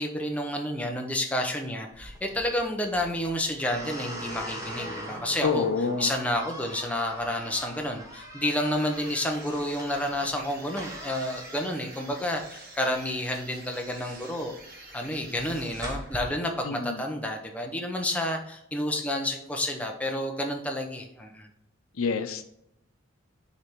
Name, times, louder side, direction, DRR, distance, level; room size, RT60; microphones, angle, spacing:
voice 1, 0.0-5.7 6.0-14.5 14.9-21.5, left 1 dB, 5° left, 2 dB, 0.7 m, -30 dB
sound 1, 1.9-16.2, equal, 15° right, 1.0 m, -42 dB
voice 2, 5.4-6.1 16.6-17.0 22.0-22.4, left 5 dB, 90° left, 9 dB, 0.6 m, -27 dB
sound 2, 8.9-16.4, right 2 dB, 45° right, 1.2 m, -48 dB
6.7 x 3.4 x 4.4 m, 0.78 s
head